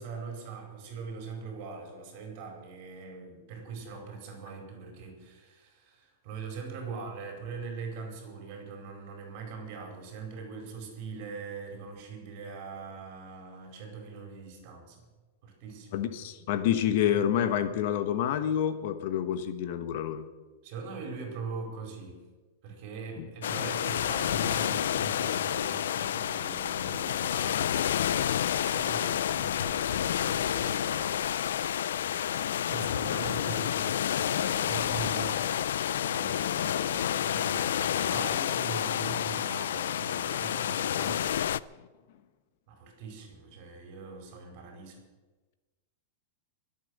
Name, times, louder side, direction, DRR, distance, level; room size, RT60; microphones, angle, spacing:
voice 1, 0.0-15.1 15.4-16.1 20.6-22.2 22.6-27.7 27.9-31.2 31.9-35.5 36.0-41.2 42.7-45.0, right 5 dB, 40° right, 2 dB, 4.8 m, -42 dB
voice 2, 15.9-20.3 23.2-23.3 35.4-35.5, left 10 dB, 50° left, 10 dB, 1.1 m, -28 dB
sound 1, 23.4-41.6, left 10 dB, 85° left, 0.4 m, -29 dB
22.5 x 8.5 x 6.6 m, 1.2 s
supercardioid pair, 165°, 0 cm